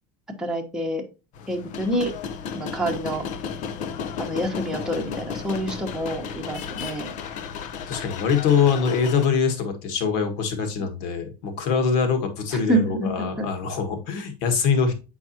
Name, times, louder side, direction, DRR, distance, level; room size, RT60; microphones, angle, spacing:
voice 1, 0.4-1.0 1.5-2.1 2.5-3.2 4.2-7.1 12.7-13.5, right 1 dB, 5° right, 0 dB, 1.1 m, -27 dB
sound 1, 1.3-9.3, left 6 dB, 50° left, 0.7 m, -33 dB
voice 2, 7.9-14.9, left 6 dB, 70° left, 6 dB, 1.7 m, -23 dB
7.8 x 4.7 x 2.8 m, 0.30 s
supercardioid pair, 140°, 17 cm